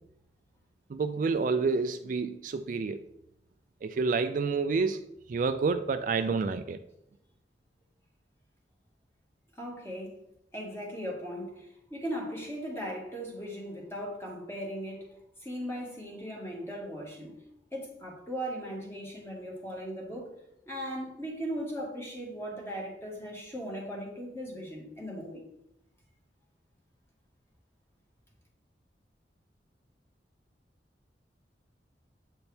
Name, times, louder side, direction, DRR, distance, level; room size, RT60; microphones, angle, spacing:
voice 1, 0.9-3.0 3.8-5.0 5.3-6.8, right 4 dB, 50° right, 9 dB, 0.3 m, -28 dB
voice 2, 9.6-10.2 10.5-15.1 15.4-17.3 17.7-20.3 20.6-25.4, equal, 15° left, -2 dB, 1.7 m, -38 dB
8.1 x 4.3 x 3.4 m, 0.79 s
head